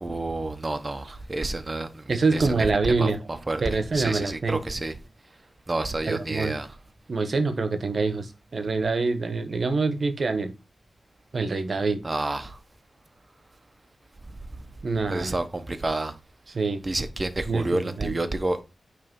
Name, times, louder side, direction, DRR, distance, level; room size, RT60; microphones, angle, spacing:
voice 1, 0.0-2.5 2.8-4.9 5.7-6.7 12.0-12.6 15.1-16.1 16.8-18.7, right 2 dB, 25° right, 1.0 m, -29 dB
voice 2, 2.1-3.2 3.6-4.6 6.1-6.5 7.1-10.5 11.3-12.0 14.8-15.3 16.5-16.8 17.5-18.2, right 3 dB, 50° right, 1.2 m, -25 dB
9.2 x 3.4 x 5.4 m
wide cardioid pair, 115°, 0 cm